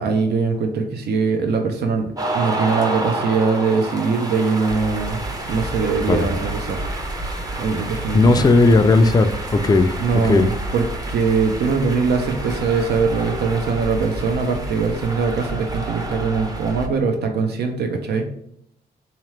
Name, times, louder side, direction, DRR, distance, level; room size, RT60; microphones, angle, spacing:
voice 1, 0.0-5.2 5.5-6.8 7.6-8.5 10.0-10.8 11.1-18.3, right 4 dB, 75° right, 4 dB, 0.7 m, -22 dB
sound 1, 2.2-16.9, right 2 dB, 20° right, 0.7 m, -31 dB
sound 2, 4.7-17.0, right 2 dB, 45° right, 1.4 m, -33 dB
voice 2, 8.1-9.9 10.2-10.5, left 3 dB, 25° left, 9 dB, 0.4 m, -15 dB
3.7 x 2.9 x 3.2 m, 0.70 s
cardioid pair, 80°, 17 cm